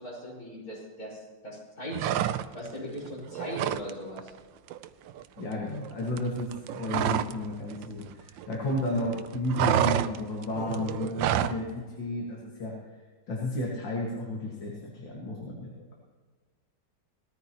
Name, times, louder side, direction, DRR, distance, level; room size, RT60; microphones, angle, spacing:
voice 1, 0.0-2.1 2.5-4.3, equal, 50° left, -6 dB, 5.9 m, -39 dB
sound 1, 1.9-2.8 3.1-3.9 4.2-4.4 4.7-7.5 7.7-8.8 9.1-11.6, right 11 dB, 85° right, 1.3 m, -29 dB
voice 2, 5.4-12.8 13.3-15.7, left 1 dB, 90° left, -2 dB, 2.7 m, -32 dB
19.0 x 14.0 x 3.0 m, 1.5 s
omnidirectional pair, 2.0 m